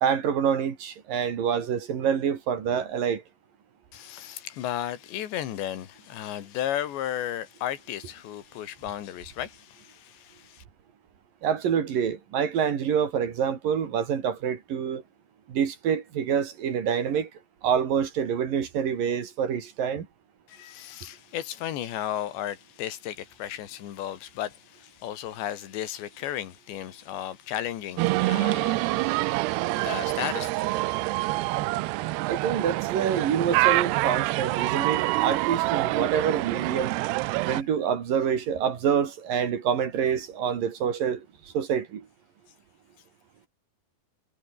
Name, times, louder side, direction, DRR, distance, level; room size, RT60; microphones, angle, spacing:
voice 1, 0.0-3.2 11.4-15.0 15.5-17.3 17.6-20.1 32.3-37.0 37.5-41.3 41.5-42.0, right 8 dB, 55° right, 3.9 m, -26 dB
voice 2, 3.9-10.6 20.5-30.8, left 11 dB, 90° left, 4.3 m, -34 dB
sound 1, 28.0-37.6, right 20 dB, 80° right, 2.7 m, -26 dB
omnidirectional pair, 4.9 m